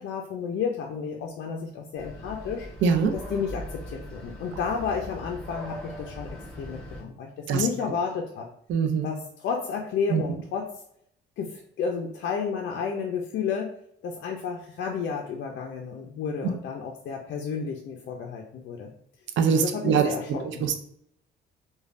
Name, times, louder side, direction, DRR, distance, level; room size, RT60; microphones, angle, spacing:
voice 1, 0.0-2.7 3.1-8.5 9.0-10.7 11.4-13.7 14.0-18.9 19.5-20.6, left 6 dB, 65° left, 1 dB, 0.4 m, -32 dB
sound 1, 2.0-7.0, equal, 5° left, 1.2 m, -40 dB
voice 2, 2.8-3.1 7.5-7.6 8.7-9.1 10.1-10.2 19.4-20.1 20.6-20.7, right 6 dB, 75° right, 6 dB, 0.4 m, -22 dB
3.2 x 2.2 x 2.5 m, 0.69 s
cardioid pair, 90°, 20 cm